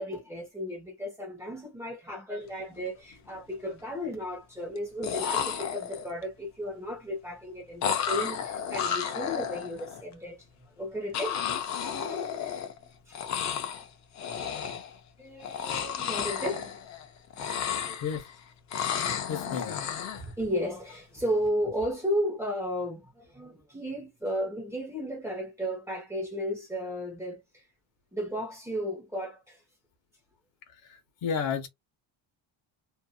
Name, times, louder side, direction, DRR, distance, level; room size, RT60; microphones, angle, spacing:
voice 1, 0.0-11.4 12.0-12.3 13.1-13.6 14.5-14.7 15.2-16.8 17.4-18.0 19.5-19.6 20.1-27.6 28.1-29.6, equal, 5° right, 0.8 m, -34 dB
sound 1, 2.6-2.8 3.1-3.7 4.8-4.9 5.0-6.2 7.8-10.0 11.1-12.9 13.1-13.9 14.2-15.0 15.4-17.1 17.3-18.3 18.7-20.2, left 8 dB, 40° left, 0.4 m, -32 dB
voice 2, 19.3-19.8 30.8-31.7, left 7 dB, 65° left, 0.9 m, -32 dB
2.7 x 2.5 x 2.2 m
cardioid pair, 175°, 49 cm